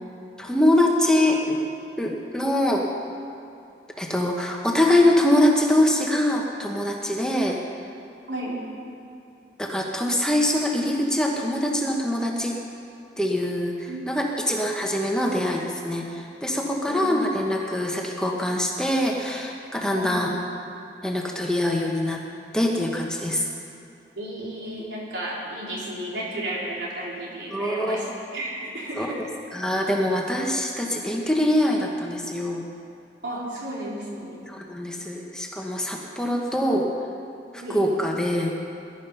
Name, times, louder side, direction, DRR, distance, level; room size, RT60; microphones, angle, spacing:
voice 1, 0.4-1.6 2.0-2.8 4.0-7.6 9.6-12.6 13.2-20.3 21.0-22.2 22.5-23.5 27.5-28.0 29.0-29.1 29.5-32.6 34.5-36.9 37.5-38.6, left 1 dB, 5° left, 0 dB, 1.1 m, -23 dB
voice 2, 8.3-8.6 13.9-14.1 16.8-17.1 19.9-20.2 24.2-28.1 28.3-29.2 33.2-34.4 37.6-37.8, right 1 dB, 80° right, -5 dB, 4.1 m, -33 dB
20.5 x 11.5 x 5.5 m, 2.6 s
head